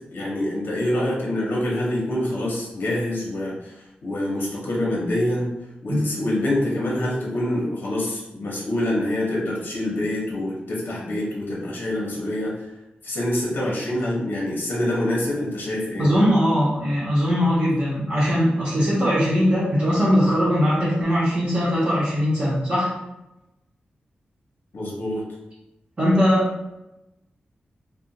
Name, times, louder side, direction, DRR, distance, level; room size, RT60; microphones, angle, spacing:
voice 1, 0.1-5.5 5.8-12.7 13.0-16.1 24.7-25.2, left 1 dB, 65° left, -3 dB, 0.8 m, -26 dB
voice 2, 16.0-22.9 26.0-26.5, equal, 35° right, -9 dB, 0.9 m, -20 dB
2.4 x 2.2 x 4.0 m, 0.92 s
wide cardioid pair, 145°, 4 cm